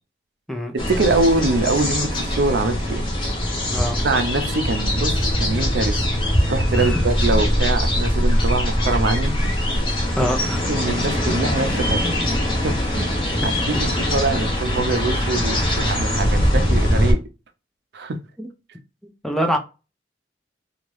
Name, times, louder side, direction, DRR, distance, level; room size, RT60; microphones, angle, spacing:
sound 1, 0.8-17.1, equal, 30° left, 1.0 m, -22 dB
voice 1, 0.9-3.0 4.0-6.0 6.5-9.8 10.2-10.3 10.7-12.2 12.6-13.1 13.4-13.5 13.8-17.2 17.9-18.2, right 3 dB, 65° right, 0.5 m, -24 dB
voice 2, 3.7-4.1 6.8-7.0 10.2-10.7 19.2-19.6, equal, ahead, 0.4 m, -24 dB
2.7 x 2.5 x 3.1 m
head